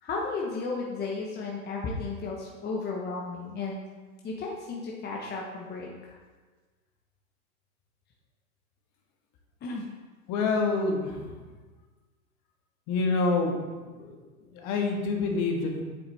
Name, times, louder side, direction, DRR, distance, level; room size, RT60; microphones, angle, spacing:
voice 1, 0.0-3.8 4.2-6.2 9.6-9.8, left 3 dB, 20° left, -2 dB, 1.2 m, -34 dB
voice 2, 10.3-11.2 12.9-13.5 14.0-14.1 14.5-15.8, left 3 dB, 40° left, 2 dB, 1.7 m, -26 dB
8.9 x 7.0 x 3.5 m, 1.3 s
hypercardioid pair, 115°, 45 cm